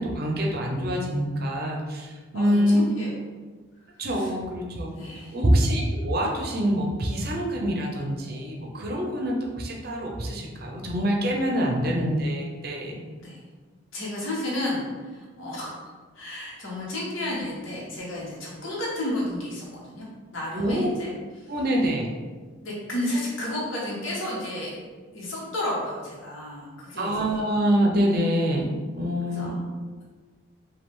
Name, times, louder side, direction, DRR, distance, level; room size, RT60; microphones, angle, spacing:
voice 1, 0.0-2.9 4.0-4.9 5.3-13.0 18.6-18.7 20.5-20.9 21.5-22.1 27.0-29.5, equal, 45° right, -1 dB, 0.7 m, -25 dB
voice 2, 2.3-3.2 3.9-4.3 4.9-5.4 13.2-13.4 13.9-15.8 16.1-20.1 20.3-21.5 22.6-24.8 25.1-27.4 29.2-29.6, left 1 dB, 70° left, -5 dB, 1.4 m, -32 dB
5.1 x 2.4 x 3.7 m, 1.4 s
head